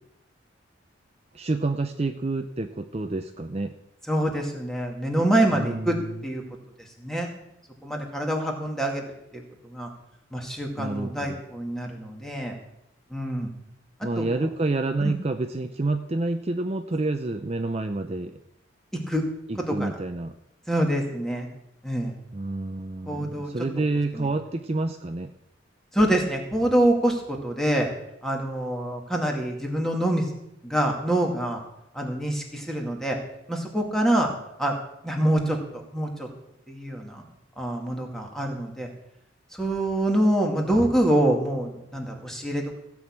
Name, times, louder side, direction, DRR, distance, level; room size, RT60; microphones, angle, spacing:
voice 1, 1.3-3.8 5.5-6.1 10.8-11.4 14.0-18.4 19.5-20.3 22.3-25.3, right 2 dB, 35° right, 7 dB, 0.6 m, -28 dB
voice 2, 4.1-6.0 6.2-6.4 6.8-7.3 7.8-9.0 9.3-9.9 10.3-12.6 13.1-13.5 14.0-14.3 15.0-15.1 18.9-19.2 19.7-19.9 20.7-21.5 21.8-22.1 23.1-23.5 24.1-24.3 25.9-27.9 28.2-30.3 30.6-31.6 31.9-33.2 33.5-34.3 34.6-34.7 35.0-35.6 35.9-36.3 36.7-37.2 37.6-38.9 39.5-42.8, right 1 dB, ahead, 1 dB, 2.2 m, -25 dB
16.0 x 6.3 x 8.8 m, 0.82 s
head